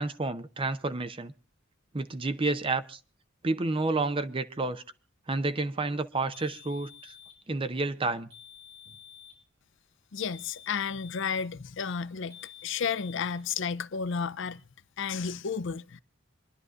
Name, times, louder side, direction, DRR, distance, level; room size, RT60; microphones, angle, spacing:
voice 1, 0.0-1.3 1.9-3.0 3.4-4.8 5.3-7.1 7.5-8.3, right 3 dB, 25° right, 0.7 m, -30 dB
sound 1, 6.3-7.4 8.3-9.4 10.3-11.4 12.3-13.4, left 9 dB, 60° right, 5.8 m, -50 dB
voice 2, 10.1-14.6 15.0-16.0, left 6 dB, 65° left, 0.5 m, -32 dB
27.0 x 11.0 x 2.5 m
head